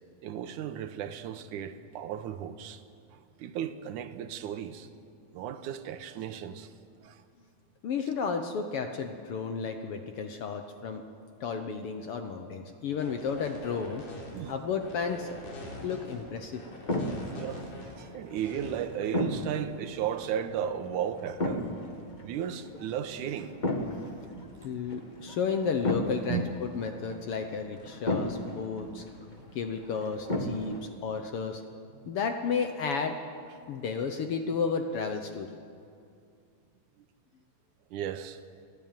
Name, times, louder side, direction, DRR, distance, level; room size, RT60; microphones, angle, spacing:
voice 1, 0.2-2.8 3.1-4.9 5.3-6.7 7.0-7.2 14.3-14.6 17.3-21.7 22.2-23.5 26.3-26.4 37.9-38.4, right 9 dB, 85° right, 2.4 m, -35 dB
voice 2, 7.8-11.0 11.4-14.0 14.5-15.3 15.8-16.6 24.6-29.0 29.5-30.8 31.0-31.6 32.1-33.2 33.7-35.5, left 5 dB, 65° left, 1.5 m, -32 dB
sound 1, 12.9-18.7, left 1 dB, 85° left, 4.9 m, -44 dB
sound 2, 15.1-30.8, left 1 dB, 25° left, 1.1 m, -36 dB
30.0 x 10.5 x 9.1 m
omnidirectional pair, 3.5 m